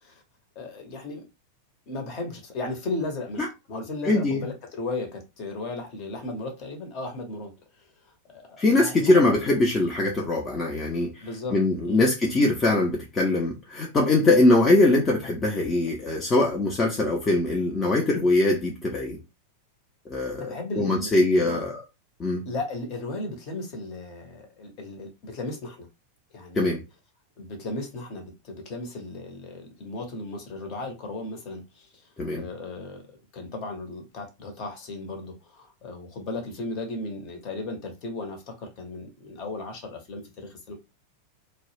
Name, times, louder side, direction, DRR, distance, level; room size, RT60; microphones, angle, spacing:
voice 1, 0.6-1.2 1.9-7.5 8.3-9.2 11.2-11.6 11.8-12.0 20.3-21.6 22.4-25.9 26.3-26.8 27.4-32.0 32.3-33.0 33.3-40.7, left 2 dB, 40° left, 0.8 m, -35 dB
voice 2, 4.0-4.4 8.6-11.1 11.5-19.2 20.1-21.8 22.2-22.4 26.6-26.8 32.2-32.4, left 2 dB, 20° left, 0.5 m, -22 dB
2.2 x 2.0 x 3.1 m
figure-of-eight pair, 90°, 0 cm